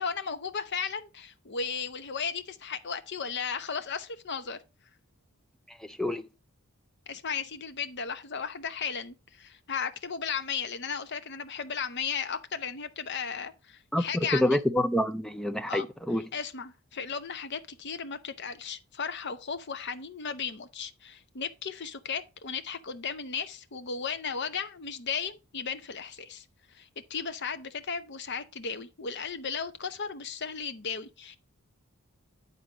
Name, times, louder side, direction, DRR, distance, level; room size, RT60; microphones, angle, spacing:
voice 1, 0.0-4.6 7.1-14.6 15.7-15.9 16.3-31.4, left 6 dB, 50° left, 0.7 m, -35 dB
voice 2, 5.7-6.3 13.9-16.3, left 1 dB, ahead, 0.4 m, -27 dB
9.7 x 4.1 x 4.9 m
head